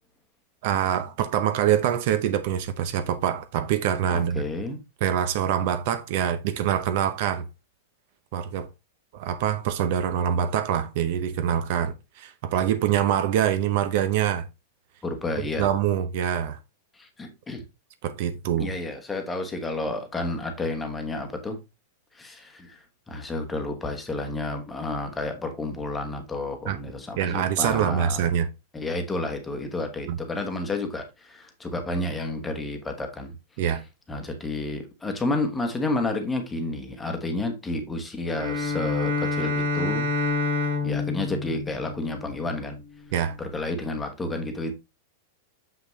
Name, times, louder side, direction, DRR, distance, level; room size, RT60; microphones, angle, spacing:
voice 1, 0.6-4.4 5.0-7.4 8.3-8.7 9.1-14.4 15.6-16.6 18.0-18.7 26.7-26.8 27.2-28.5 30.1-30.2 33.6-33.8 43.1-43.4, right 9 dB, 45° right, 0.7 m, -25 dB
voice 2, 4.1-4.8 15.0-15.7 17.0-17.6 18.6-21.6 22.1-22.8 23.1-28.3 28.7-33.3 34.1-40.1 40.8-42.8 43.4-44.7, left 2 dB, 10° left, 1.1 m, -30 dB
Bowed string instrument, 38.3-42.7, left 3 dB, 80° right, 3.0 m, -28 dB
6.8 x 5.9 x 3.1 m
supercardioid pair, 165°, 0 cm